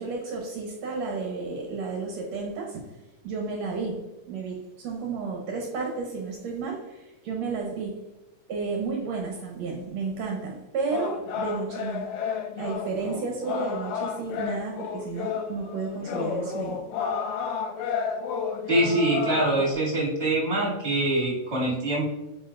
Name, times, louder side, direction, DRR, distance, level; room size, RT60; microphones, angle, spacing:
voice 1, 0.0-2.8 3.2-4.0 4.3-8.0 8.5-12.1 12.6-16.8, right 4 dB, 70° right, 0 dB, 1.8 m, -32 dB
sound 1, 10.9-19.7, left 6 dB, 80° left, 2.6 m, -31 dB
voice 2, 18.7-22.0, right 1 dB, 25° right, -5 dB, 1.6 m, -24 dB
9.0 x 4.6 x 2.4 m, 1.0 s
omnidirectional pair, 3.9 m